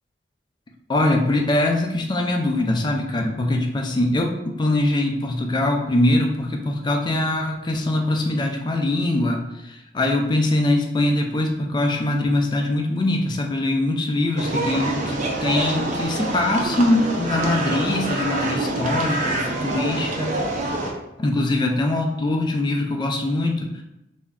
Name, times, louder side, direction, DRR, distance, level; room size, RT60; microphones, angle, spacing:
voice 1, 0.9-20.3 21.2-23.8, left 1 dB, 25° left, 2 dB, 0.3 m, -22 dB
sound 1, 14.4-20.9, right 2 dB, 40° right, 0.4 m, -26 dB
2.3 x 2.1 x 3.4 m, 0.90 s
head